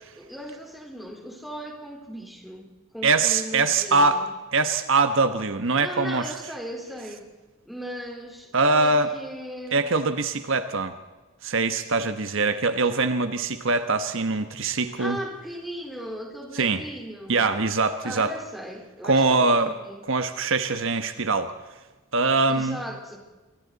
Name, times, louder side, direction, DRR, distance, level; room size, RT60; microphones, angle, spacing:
voice 1, 0.2-4.3 5.8-7.3 7.7-9.8 15.0-17.5 18.0-20.0 22.5-23.2, equal, ahead, 0 dB, 4.0 m, -37 dB
voice 2, 3.0-4.2 4.5-6.3 8.5-9.1 9.7-10.9 11.4-15.2 16.5-16.8 17.3-18.3 19.0-19.7 20.1-21.5 22.1-22.8, right 3 dB, 60° right, 9 dB, 1.2 m, -23 dB
28.5 x 24.0 x 4.1 m, 1.2 s
head